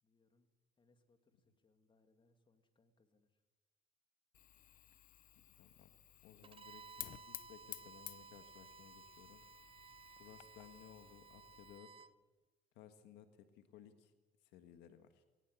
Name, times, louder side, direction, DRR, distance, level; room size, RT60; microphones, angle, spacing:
voice 1, 0.0-0.5 0.8-3.4, left 3 dB, 30° left, 7 dB, 2.7 m, -75 dB
Fire, 4.3-11.8, left 11 dB, 55° left, 0.8 m, -55 dB
voice 2, 5.4-5.9 6.2-9.4 10.2-12.1 12.8-14.1 14.5-15.2, left 10 dB, 90° left, 8 dB, 1.7 m, -60 dB
Bowed string instrument, 6.4-12.1, right 5 dB, 35° right, 0.8 m, -58 dB
20.5 x 18.5 x 8.5 m, 1.2 s
cardioid pair, 110°, 17 cm